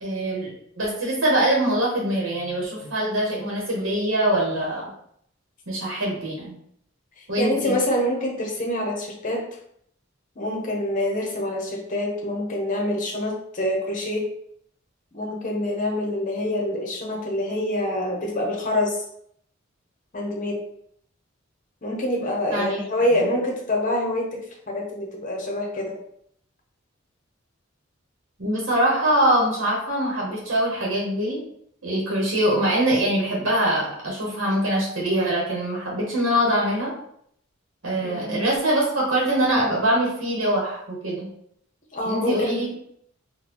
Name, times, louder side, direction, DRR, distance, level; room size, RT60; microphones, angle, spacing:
voice 1, 0.0-4.9 5.7-6.6 7.3-7.7 22.5-22.8 28.4-31.4 31.8-36.9 37.8-41.3 42.0-42.8, right 1 dB, 70° right, -3 dB, 1.0 m, -23 dB
voice 2, 7.2-9.5 10.4-14.2 15.1-19.0 20.1-20.6 21.8-24.3 24.7-25.9 38.0-38.4 41.9-42.6, left 1 dB, 40° left, 0 dB, 0.8 m, -26 dB
3.8 x 2.2 x 3.0 m, 0.69 s
head